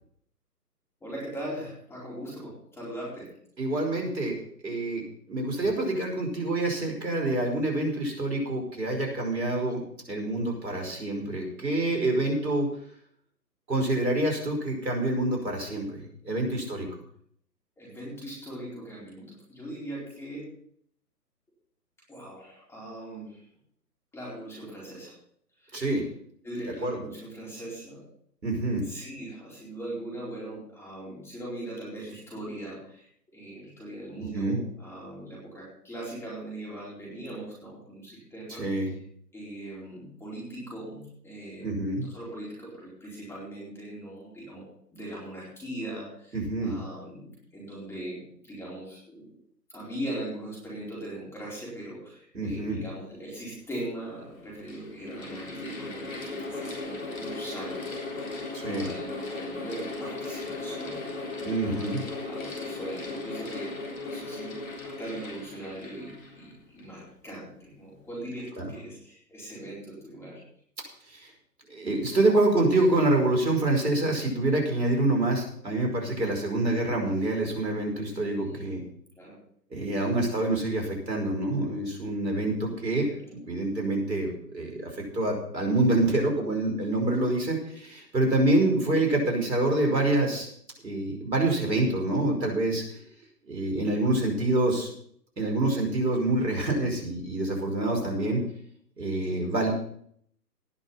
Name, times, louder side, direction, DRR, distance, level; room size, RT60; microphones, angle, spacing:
voice 1, 1.0-3.3 17.8-20.5 22.1-23.4 24.1-25.1 25.6-25.9 26.4-28.0 28.8-38.7 39.3-44.6 44.9-49.2 49.7-70.4 78.3-78.6 79.2-79.4 83.1-83.2 99.3-99.4, right 1 dB, 5° left, -6 dB, 4.3 m, -40 dB
voice 2, 3.6-4.4 4.6-5.0 5.3-9.8 10.1-12.7 13.7-16.9 25.7-26.0 26.8-27.0 28.4-28.8 34.3-34.6 38.5-38.9 41.6-42.1 46.3-46.8 52.3-52.8 58.5-58.9 61.4-62.0 68.6-68.7 71.1-71.3 71.7-78.8 79.7-83.1 83.5-90.5 90.8-93.0 93.5-94.9 95.4-98.4 99.0-99.7, right 2 dB, 80° right, 1 dB, 5.4 m, -26 dB
Mechanical fan, 53.4-53.5 54.3-67.0, left 3 dB, 55° left, 3.9 m, -37 dB
18.0 x 6.6 x 5.7 m, 0.64 s
figure-of-eight pair, 140°, 50 cm